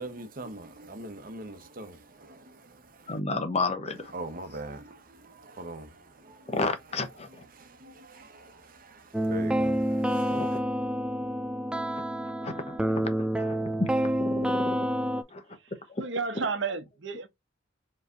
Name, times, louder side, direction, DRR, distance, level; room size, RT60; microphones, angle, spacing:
voice 1, 0.0-3.2 4.1-6.6 7.3-10.6, right 1 dB, 50° right, 1.0 m, -43 dB
voice 2, 3.1-4.1 6.5-7.4 10.3-10.5 12.2-14.8 15.3-15.4 15.9-16.0 16.3-16.5, left 3 dB, 35° left, 0.9 m, -32 dB
sound 1, 9.1-15.2, equal, 5° right, 0.3 m, -28 dB
voice 3, 16.0-17.3, right 4 dB, 75° right, 0.9 m, -31 dB
4.7 x 3.2 x 2.6 m
head